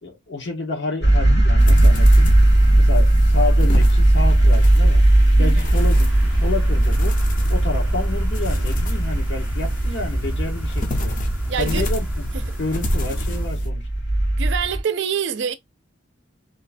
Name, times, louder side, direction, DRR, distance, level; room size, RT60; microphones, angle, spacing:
voice 1, 0.0-2.3 2.8-5.0 5.4-7.2 7.5-11.1 11.6-12.3 12.6-13.9, left 3 dB, 80° left, 1.1 m, -29 dB
sound 1, 1.0-14.8, right 1 dB, 65° left, 1.4 m, -17 dB
sound 2, 1.6-13.7, left 1 dB, 50° left, 0.6 m, -30 dB
sound 3, 5.7-13.5, right 1 dB, 10° right, 0.5 m, -31 dB
voice 2, 11.5-11.9 12.5-12.6 14.4-15.5, right 7 dB, 85° right, 0.5 m, -26 dB
2.8 x 2.2 x 2.4 m
head